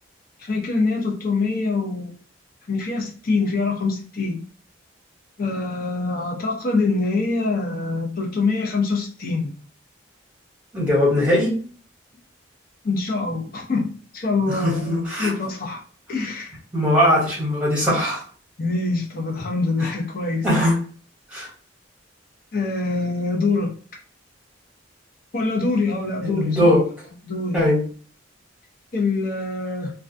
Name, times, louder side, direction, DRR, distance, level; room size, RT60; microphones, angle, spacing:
voice 1, 0.4-2.1 2.7-4.4 5.4-9.5 12.8-14.9 15.2-15.8 16.1-16.5 18.6-20.5 22.5-23.7 25.3-26.7 27.2-27.7 28.9-29.9, left 3 dB, 45° left, -1 dB, 0.6 m, -24 dB
voice 2, 10.7-11.5 14.5-15.3 16.7-18.2 19.8-19.9 20.4-20.8 21.3-21.5 26.2-26.8 27.5-27.8, left 1 dB, 5° right, -5 dB, 1.0 m, -20 dB
2.3 x 2.3 x 2.5 m, 0.42 s
head